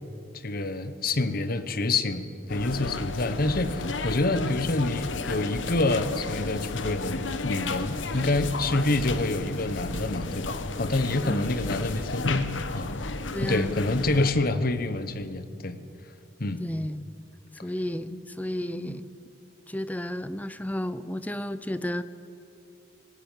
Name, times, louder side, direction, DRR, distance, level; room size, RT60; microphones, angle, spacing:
voice 1, 0.3-12.9 13.4-15.8 16.4-16.6 18.1-18.2 18.8-19.0, left 2 dB, 50° left, 12 dB, 1.1 m, -27 dB
sound 1, 2.5-14.3, left 3 dB, 85° left, 1.1 m, -33 dB
voice 2, 13.3-13.7 16.6-17.1 17.6-19.1 19.7-22.0, left 1 dB, 10° left, 13 dB, 0.5 m, -32 dB
19.0 x 18.5 x 7.4 m, 2.7 s
head